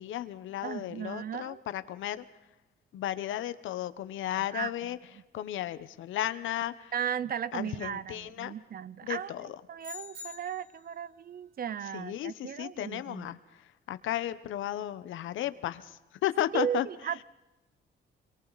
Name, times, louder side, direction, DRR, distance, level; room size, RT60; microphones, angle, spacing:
voice 1, 0.0-2.2 2.9-5.0 5.3-6.9 7.5-8.6 9.0-9.6 11.9-16.9, left 12 dB, 80° left, 13 dB, 1.1 m, -34 dB
voice 2, 0.6-1.6 4.4-4.7 6.9-13.4 16.5-17.2, right 9 dB, 50° right, 18 dB, 0.7 m, -36 dB
sound 1, 9.8-10.9, left 5 dB, 65° right, 5.7 m, -45 dB
27.0 x 23.5 x 4.1 m, 1.0 s
cardioid pair, 90°, 20 cm